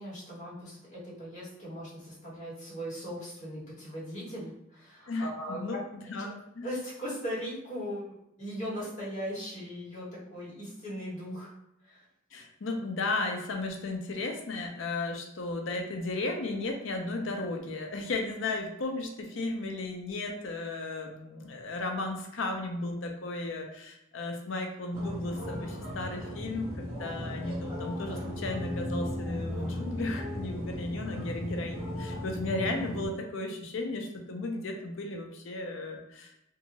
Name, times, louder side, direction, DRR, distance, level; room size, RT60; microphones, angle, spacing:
voice 1, 0.0-5.8 6.2-6.3 6.6-11.5 11.8-12.0, equal, 40° left, -7 dB, 1.4 m, -39 dB
voice 2, 5.1-5.8 6.1-6.7 12.3-36.3, left 2 dB, 65° left, 3 dB, 0.5 m, -35 dB
sound 1, 24.9-33.1, left 1 dB, 10° right, 1.1 m, -36 dB
2.6 x 2.5 x 2.9 m, 0.82 s
head